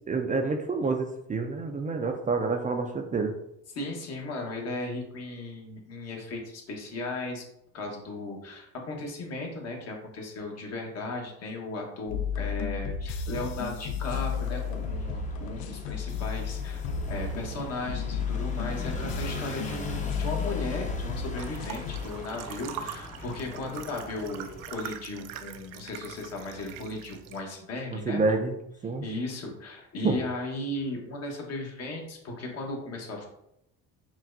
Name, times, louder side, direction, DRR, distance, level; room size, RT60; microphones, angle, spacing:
voice 1, 0.1-3.3 27.9-28.6 28.8-29.1 30.0-30.2, right 3 dB, 25° right, 3 dB, 0.4 m, -28 dB
voice 2, 3.7-7.4 7.7-28.2 29.0-33.3, left 2 dB, 50° left, 0 dB, 1.2 m, -36 dB
sound 1, 12.1-22.0, left 5 dB, 90° left, 0.5 m, -33 dB
sound 2, 14.3-24.7, left 2 dB, 25° left, 0.8 m, -41 dB
sound 3, 21.4-27.4, right 9 dB, 75° right, 0.5 m, -42 dB
5.8 x 2.2 x 2.6 m, 0.79 s
supercardioid pair, 85°, 32 cm